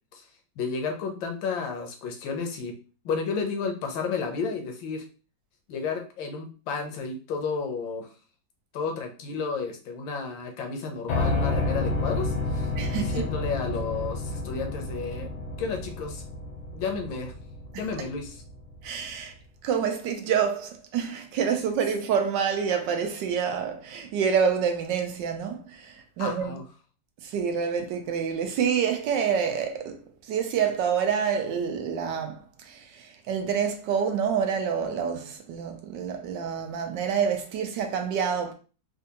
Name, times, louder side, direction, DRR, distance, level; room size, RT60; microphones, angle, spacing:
voice 1, 0.6-2.7 3.0-5.0 5.7-8.1 8.7-15.3 15.6-16.2 16.7-17.3 17.8-18.4 26.2-26.6, left 5 dB, 80° left, 1.5 m, -32 dB
Piano, 11.1-19.1, left 2 dB, 65° left, 1.1 m, -30 dB
voice 2, 12.8-13.3 18.8-19.3 19.6-26.6 27.2-38.5, right 7 dB, 75° right, 1.2 m, -27 dB
4.3 x 2.3 x 2.8 m
omnidirectional pair, 2.1 m